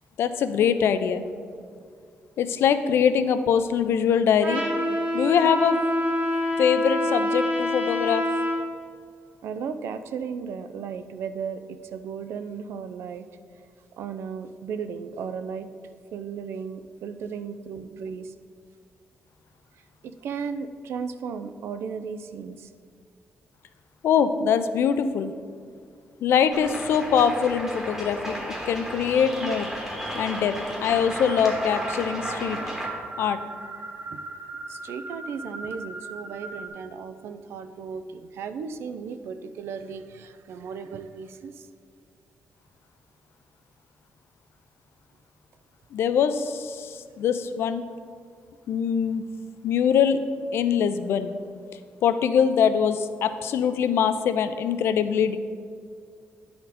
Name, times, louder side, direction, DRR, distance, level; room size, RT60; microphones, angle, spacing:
voice 1, 0.2-1.2 2.4-4.6 5.1-5.8 6.6-8.2 24.0-25.3 26.2-28.4 28.7-29.7 30.1-30.5 30.8-32.6 33.2-33.4 45.9-47.8 48.7-49.2 49.6-50.2 50.5-51.3 52.0-55.4, left 7 dB, 75° left, 10 dB, 0.4 m, -23 dB
Trumpet, 4.4-8.6, left 1 dB, 35° right, 1.1 m, -26 dB
voice 2, 9.4-13.3 13.5-13.6 14.0-15.7 16.1-18.3 20.0-22.7 33.2-33.3 34.1-34.2 34.7-41.7, right 6 dB, 85° right, 10 dB, 0.4 m, -35 dB
sound 1, 26.5-32.9, equal, 10° right, 1.1 m, -34 dB
sound 2, 30.9-36.7, right 3 dB, 60° right, 1.0 m, -39 dB
10.0 x 4.3 x 4.1 m, 2.2 s
wide cardioid pair, 175°, 4 cm